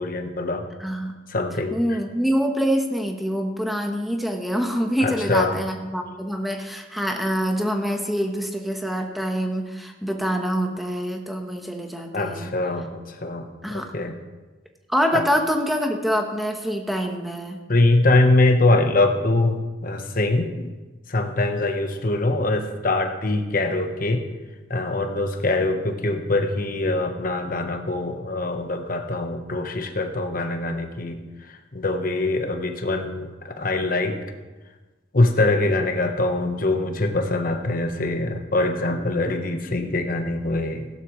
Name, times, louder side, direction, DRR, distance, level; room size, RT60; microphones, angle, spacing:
voice 1, 0.0-0.7 1.3-2.0 5.0-5.6 12.1-14.1 15.1-15.2 17.7-20.7 21.1-24.2 24.7-31.2 31.5-34.2 35.1-40.9, left 2 dB, 50° left, 6 dB, 1.1 m, -23 dB
voice 2, 0.8-1.1 1.7-12.5 13.6-13.9 14.9-17.6, equal, ahead, 2 dB, 1.1 m, -25 dB
16.5 x 12.0 x 3.2 m, 1.2 s
head